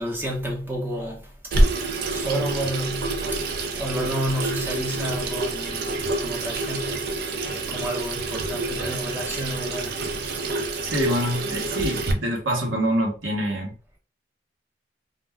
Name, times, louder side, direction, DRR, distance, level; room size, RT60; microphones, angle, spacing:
voice 1, 0.0-7.1 7.4-10.8, equal, 10° right, 0.7 m, -31 dB
Water tap faucet / Sink (filling or washing), 1.5-12.1, right 2 dB, 55° right, 0.4 m, -27 dB
voice 2, 10.8-13.7, equal, 90° right, 1.1 m, -25 dB
2.5 x 2.1 x 3.4 m
head